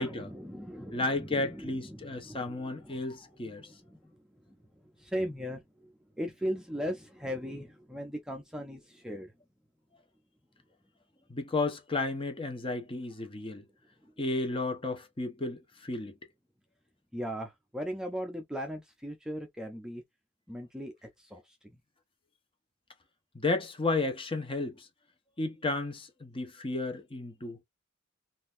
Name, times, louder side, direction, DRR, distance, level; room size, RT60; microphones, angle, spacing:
voice 1, 0.0-3.2 3.4-4.2 4.5-9.3 14.0-14.1 17.1-20.0 20.5-21.6, equal, 5° right, 0.6 m, -39 dB
voice 2, 0.9-3.7 11.3-13.6 14.2-16.1 23.3-24.9 25.4-27.6, left 2 dB, 25° left, 0.9 m, -33 dB
3.9 x 2.6 x 2.4 m
head